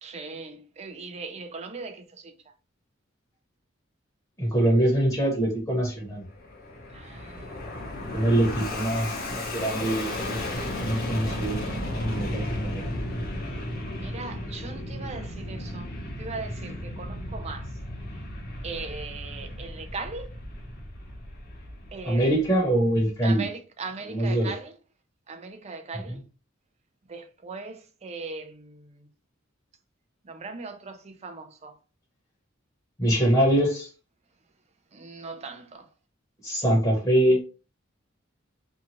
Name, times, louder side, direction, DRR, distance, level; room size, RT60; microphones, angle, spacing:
voice 1, 0.0-2.3 6.9-7.7 14.0-15.9 16.2-17.7 18.6-20.3 21.9-22.2 23.2-24.7 25.3-26.2 27.1-28.9 30.3-31.8 34.9-35.8, right 4 dB, 35° right, 0.5 m, -39 dB
voice 2, 4.4-6.2 8.1-11.6 11.9-12.8 22.0-23.5 24.0-24.5 26.1-26.2 33.0-33.9 36.4-37.4, right 1 dB, 20° left, 1.0 m, -24 dB
Fixed-wing aircraft airplane, 6.2-22.8, left 1 dB, 50° left, 0.9 m, -34 dB
2.6 x 2.4 x 2.9 m
head